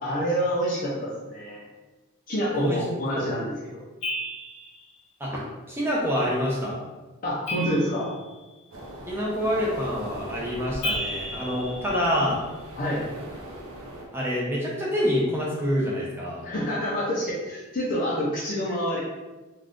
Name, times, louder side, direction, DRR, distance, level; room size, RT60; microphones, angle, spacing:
voice 1, 0.0-1.6 2.3-3.8 7.2-8.1 12.8-13.1 16.4-19.0, equal, 40° left, -6 dB, 0.5 m, -27 dB
sound 1, 4.0-4.8 7.5-8.5 10.8-12.5, equal, 65° left, 0.9 m, -33 dB
voice 2, 5.7-6.7 9.1-12.4 14.1-16.4, equal, 10° right, -4 dB, 0.5 m, -26 dB
sound 2, 8.7-14.1, right 1 dB, 65° right, 0.6 m, -40 dB
2.5 x 2.4 x 3.4 m, 1.2 s
head